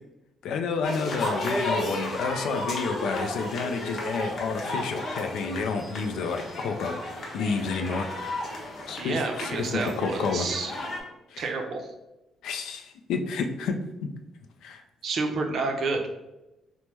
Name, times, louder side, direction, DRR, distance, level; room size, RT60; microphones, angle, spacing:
voice 1, 0.4-7.0 7.3-8.1 8.9-10.5 11.3-11.4 12.4-14.1 14.6-14.8, left 5 dB, 85° left, 6 dB, 0.3 m, -30 dB
sound 1, 0.8-11.0, left 1 dB, 55° left, 0.7 m, -33 dB
voice 2, 9.0-10.7 11.4-11.9 15.0-16.0, right 3 dB, 60° right, 3 dB, 0.5 m, -29 dB
2.9 x 2.0 x 3.3 m, 0.96 s
cardioid pair, 90°, 0 cm